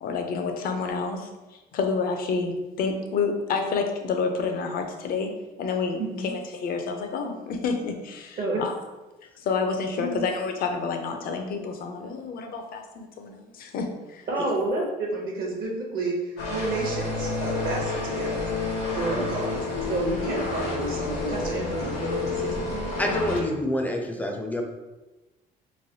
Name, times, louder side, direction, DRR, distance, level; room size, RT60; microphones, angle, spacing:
voice 1, 0.0-8.7 9.4-14.2 19.2-19.3, left 4 dB, 60° left, 5 dB, 0.5 m, -29 dB
voice 2, 6.0-6.3 8.4-8.6 10.0-10.3 14.3-18.4 18.9-19.6 19.9-22.9, right 2 dB, 60° right, -1 dB, 0.7 m, -30 dB
sound 1, 16.4-23.4, left 3 dB, 85° left, 1.0 m, -29 dB
voice 3, 23.0-24.6, equal, 10° left, 2 dB, 0.4 m, -27 dB
3.2 x 2.5 x 2.7 m, 1.1 s
cardioid pair, 110°, 17 cm